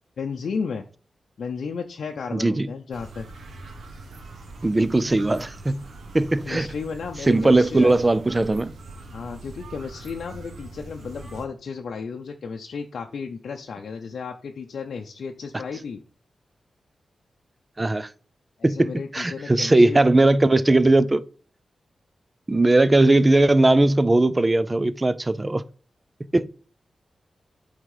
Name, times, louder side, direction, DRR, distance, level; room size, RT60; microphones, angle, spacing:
voice 1, 0.2-0.8 1.4-3.3 6.5-7.9 9.1-16.0 18.6-20.0, left 5 dB, 75° left, 0.6 m, -33 dB
voice 2, 2.3-2.7 4.6-5.8 6.1-6.7 7.3-8.8 17.8-18.1 18.6-21.2 22.5-25.6 26.3-26.5, right 2 dB, 20° right, 0.4 m, -19 dB
sound 1, 2.9-11.5, right 2 dB, 75° right, 1.3 m, -42 dB
9.0 x 3.6 x 4.8 m
wide cardioid pair, 125°, 0 cm